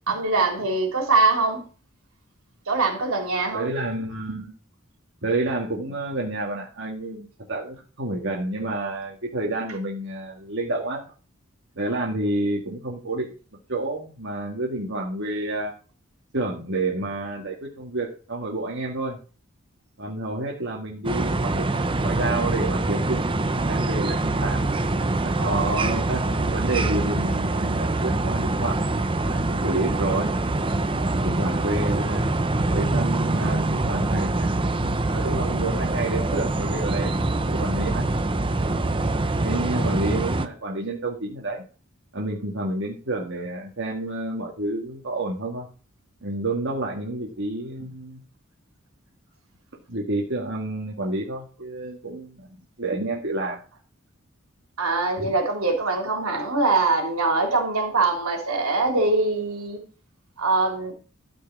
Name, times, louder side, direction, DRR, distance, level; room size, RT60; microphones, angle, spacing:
voice 1, 0.1-1.6 2.7-3.7 25.4-25.8 39.4-39.9 54.8-59.8 60.4-60.9, right 3 dB, 85° right, 3.5 m, -23 dB
voice 2, 3.5-4.5 5.2-11.0 11.8-13.3 13.7-15.7 16.3-19.2 20.0-24.6 25.2-28.8 29.3-30.3 31.2-32.3 32.7-34.5 35.1-38.0 39.4-41.6 42.1-45.7 46.2-48.2 49.9-52.5 52.8-53.6 55.2-55.3, right 2 dB, 60° right, 2.0 m, -29 dB
sound 1, 21.0-40.5, right 2 dB, 25° right, 0.8 m, -24 dB
12.5 x 5.2 x 6.1 m
head